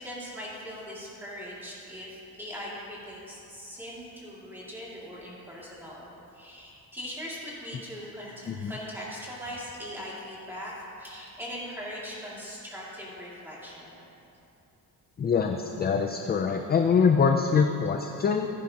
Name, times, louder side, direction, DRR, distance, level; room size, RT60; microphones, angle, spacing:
voice 1, 0.0-6.1 6.3-13.9, equal, 5° right, -7 dB, 2.3 m, -40 dB
voice 2, 15.2-18.5, left 6 dB, 30° left, 5 dB, 0.4 m, -24 dB
15.5 x 9.5 x 2.9 m, 2.8 s
wide cardioid pair, 165°, 36 cm